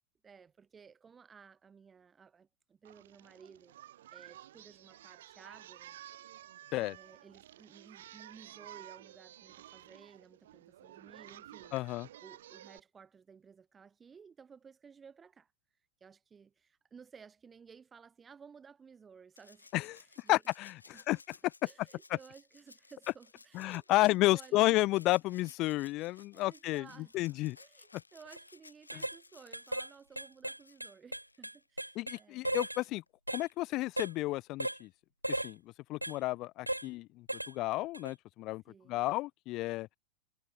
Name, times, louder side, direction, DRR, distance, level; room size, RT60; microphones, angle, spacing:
voice 1, 0.2-3.8 4.1-6.0 6.7-11.7 12.2-15.5 16.0-20.4 20.9-21.2 21.6-24.8 25.3-25.5 25.9-32.6 38.7-39.0, right 6 dB, 20° right, 2.6 m, -57 dB
Singing, 2.9-12.8, right 13 dB, 60° right, 1.6 m, -53 dB
voice 2, 11.7-12.1 19.7-20.0 20.3-21.2 23.5-26.9 27.1-27.6 32.0-33.0 33.3-34.9 35.4-35.6 35.9-38.6 38.9-39.9, left 19 dB, 40° left, 0.8 m, -31 dB
Rattle (instrument), 19.4-31.7 33.1-33.2, left 3 dB, 80° left, 3.7 m, -59 dB
sound 1, 28.3-28.4 28.9-29.2 29.5-29.9 30.2-32.2 32.4-32.8 33.3-33.5 34.0-34.1 34.6-34.8 35.2-35.5 36.0-36.2 36.7-36.9 37.3-37.5 37.9-38.1, right 1 dB, 85° right, 0.9 m, -36 dB
figure-of-eight pair, 90°, 0 cm